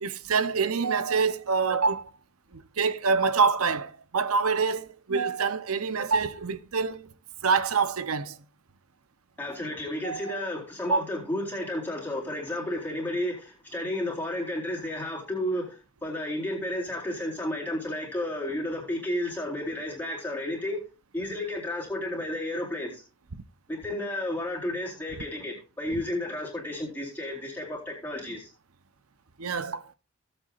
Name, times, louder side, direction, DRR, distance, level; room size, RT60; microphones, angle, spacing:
voice 1, 0.0-2.1 2.5-7.0 7.4-8.4 10.0-10.4 10.9-11.0 29.4-29.8, right 5 dB, 90° right, 0.8 m, -26 dB
voice 2, 9.4-20.8 21.1-23.0 23.7-28.5, left 1 dB, 10° left, 4.0 m, -32 dB
17.0 x 8.0 x 2.5 m
head